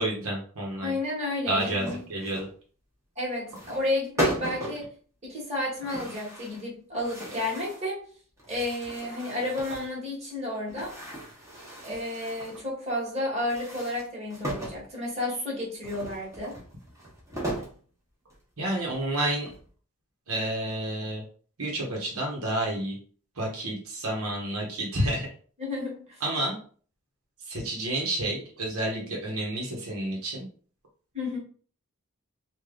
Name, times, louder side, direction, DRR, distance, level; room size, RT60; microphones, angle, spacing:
voice 1, 0.0-0.9 1.5-2.5 18.6-19.5 20.3-21.2 21.6-23.0 23.4-25.3 26.2-26.6 27.5-30.5, right 1 dB, 75° right, -1 dB, 1.1 m, -30 dB
voice 2, 0.8-2.0 3.1-4.9 5.2-8.0 8.5-10.9 11.8-16.6 25.6-26.2 31.1-31.4, left 1 dB, 30° right, -4 dB, 1.5 m, -31 dB
sound 1, 1.6-2.5 3.5-3.9 4.2-4.9 5.8-6.6 7.0-7.8 8.4-10.0 10.7-12.6 13.4-14.8 15.8-17.8 18.3-18.4 18.9-19.7, right 1 dB, 15° right, 1.0 m, -36 dB
3.3 x 2.5 x 3.7 m, 0.43 s
head